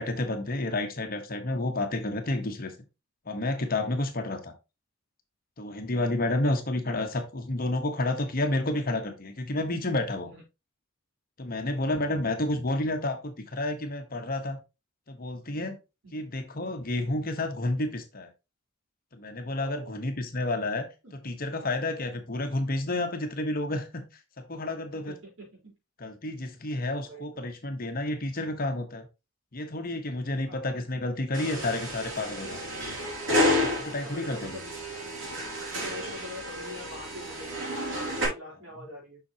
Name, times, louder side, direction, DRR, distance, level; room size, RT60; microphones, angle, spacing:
voice 1, 0.0-2.7 3.3-4.5 5.6-10.3 11.4-14.6 15.1-15.8 16.1-18.3 19.1-20.9 21.2-24.0 24.4-25.1 26.0-29.1 29.5-32.6 33.4-34.6, left 2 dB, 45° left, 6 dB, 1.1 m, -30 dB
voice 2, 19.6-20.1 20.5-20.7 21.0-21.1 24.9-25.7 27.0-27.5 30.5-30.8 34.0-34.7 35.7-39.2, left 1 dB, 80° right, -2 dB, 4.2 m, -45 dB
sound 1, 31.3-38.3, left 1 dB, 60° right, 3.9 m, -31 dB
7.2 x 5.8 x 2.9 m, 0.27 s
head